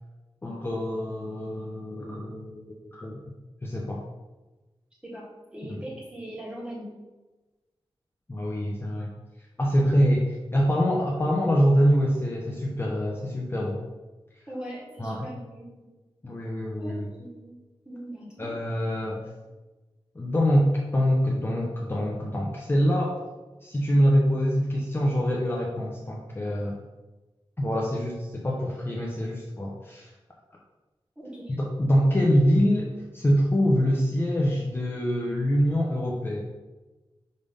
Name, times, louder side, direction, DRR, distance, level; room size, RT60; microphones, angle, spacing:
voice 1, 0.4-3.2 3.6-4.0 5.7-5.8 8.3-9.1 9.6-13.8 15.0-15.3 16.2-17.1 18.4-19.2 20.1-23.2 23.6-26.7 27.6-30.1 31.6-36.4, equal, 25° left, -2 dB, 0.7 m, -25 dB
voice 2, 5.0-6.9 14.5-15.9 16.8-17.6 17.9-18.5 31.2-31.6, right 1 dB, 10° right, -5 dB, 1.8 m, -40 dB
5.2 x 3.4 x 5.4 m, 1.2 s
wide cardioid pair, 120°, 10 cm